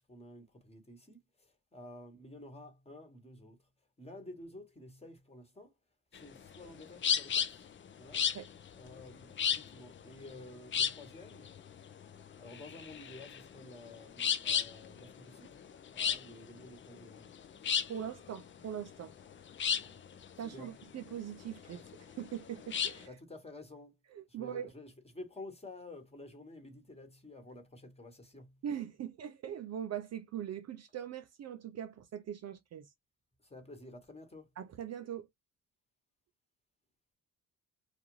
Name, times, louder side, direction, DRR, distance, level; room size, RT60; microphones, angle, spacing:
voice 1, 0.0-3.7 4.0-5.8 6.1-7.7 7.9-8.3 8.7-11.5 12.3-15.6 15.9-17.3 19.8-20.0 20.4-20.7 23.1-24.0 24.3-28.6 33.4-34.5, left 2 dB, 15° left, 1.2 m, -51 dB
sound 1, 6.1-23.1, left 8 dB, 35° left, 0.4 m, -35 dB
voice 2, 17.9-19.1 20.4-23.1 24.1-24.7 28.6-32.9 34.6-35.3, right 9 dB, 45° right, 0.5 m, -41 dB
2.5 x 2.3 x 3.0 m
cardioid pair, 85°, 36 cm